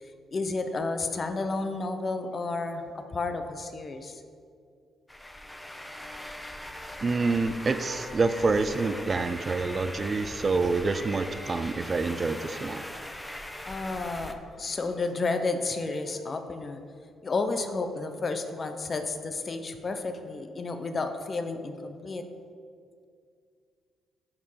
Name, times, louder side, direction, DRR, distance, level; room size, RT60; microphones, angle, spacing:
voice 1, 0.0-4.2 13.6-16.8 17.2-22.2, left 3 dB, 35° left, 7 dB, 0.8 m, -31 dB
sound 1, 5.1-14.3, left 1 dB, 5° left, 0.7 m, -40 dB
voice 2, 7.0-12.8, right 3 dB, 35° right, 10 dB, 0.5 m, -27 dB
11.0 x 4.6 x 5.7 m, 2.3 s
cardioid pair, 90°, 0 cm